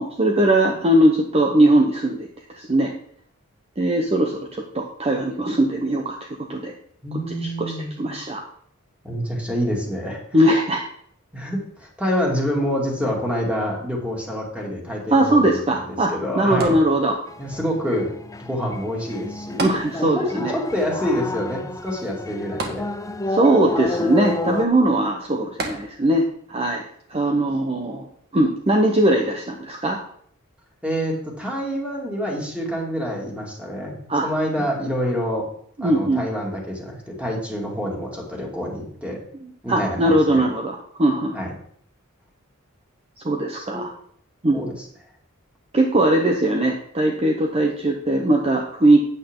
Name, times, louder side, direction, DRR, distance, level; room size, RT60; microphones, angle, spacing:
voice 1, 0.0-2.3 2.5-2.9 3.8-6.7 7.4-8.4 10.3-10.8 15.1-17.2 19.6-20.5 23.3-26.8 27.1-28.1 28.3-30.0 34.1-34.3 35.8-36.3 39.7-41.3 43.2-43.9 44.4-44.6 45.7-49.0, right 1 dB, 30° right, 1 dB, 0.9 m, -20 dB
voice 2, 7.0-7.9 9.0-10.2 11.3-16.8 17.4-18.1 18.4-19.6 20.0-22.8 30.8-35.5 35.8-39.2 39.6-40.5 41.3-41.5 43.6-43.8 44.5-44.7, equal, 5° right, -2 dB, 2.6 m, -27 dB
sound 1, 16.6-17.5 19.6-20.4 20.7-20.8 22.6-23.4 25.6-26.3 27.0-27.1, right 2 dB, 50° right, 1.6 m, -32 dB
sound 2, 17.3-24.7, left 2 dB, 15° left, 0.5 m, -31 dB
8.9 x 8.3 x 3.8 m, 0.63 s
head